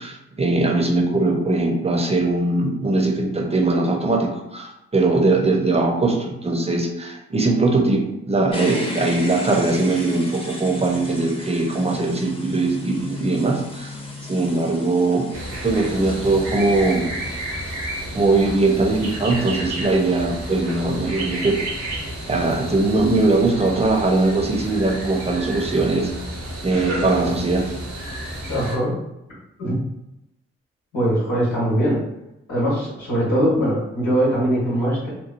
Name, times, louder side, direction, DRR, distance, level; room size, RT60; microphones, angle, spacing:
voice 1, 0.0-14.0 14.3-15.3 15.6-17.1 18.1-21.6 22.3-26.1 26.6-27.7, right 2 dB, 20° right, 2 dB, 0.7 m, -20 dB
sound 1, 8.5-16.9, left 1 dB, 20° left, 0.9 m, -34 dB
sound 2, 15.3-28.8, right 1 dB, 75° right, 0.8 m, -31 dB
voice 2, 28.5-28.9 29.6-29.8 30.9-32.0 32.5-35.1, equal, 85° left, -8 dB, 1.2 m, -21 dB
2.9 x 2.2 x 2.4 m, 0.88 s
supercardioid pair, 40°, 29 cm